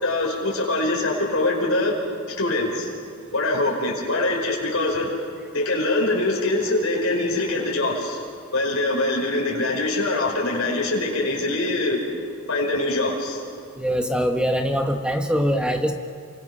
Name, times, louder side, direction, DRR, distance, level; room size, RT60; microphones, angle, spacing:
voice 1, 0.0-2.0 2.3-2.9 3.3-5.2 5.5-8.2 8.5-12.0 12.5-13.4, left 2 dB, 65° left, -2 dB, 5.4 m, -23 dB
voice 2, 13.8-15.9, equal, 5° right, 5 dB, 1.2 m, -23 dB
28.5 x 25.5 x 6.3 m, 2.5 s
head